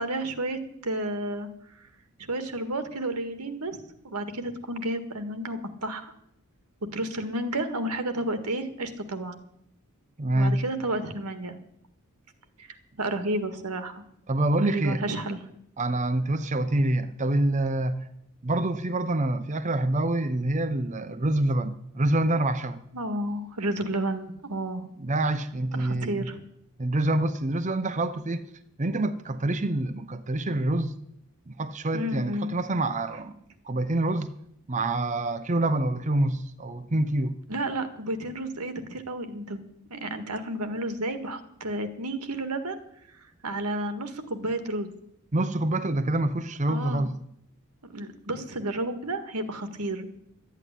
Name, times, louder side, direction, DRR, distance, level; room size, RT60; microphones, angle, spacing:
voice 1, 0.0-1.5 2.2-6.1 6.9-9.4 10.3-11.5 12.6-14.0 14.6-15.4 22.9-24.8 25.7-26.4 31.9-32.5 37.5-39.6 39.9-42.8 43.4-44.9 46.7-47.1 47.8-50.1, right 1 dB, 90° right, 1.8 m, -31 dB
voice 2, 10.2-10.6 14.3-15.0 15.8-18.1 18.4-22.9 25.0-26.3 26.8-28.5 28.8-30.9 31.5-33.4 33.6-34.3 34.7-37.4 45.3-47.2, right 1 dB, 35° right, 0.7 m, -26 dB
12.5 x 9.2 x 10.0 m
head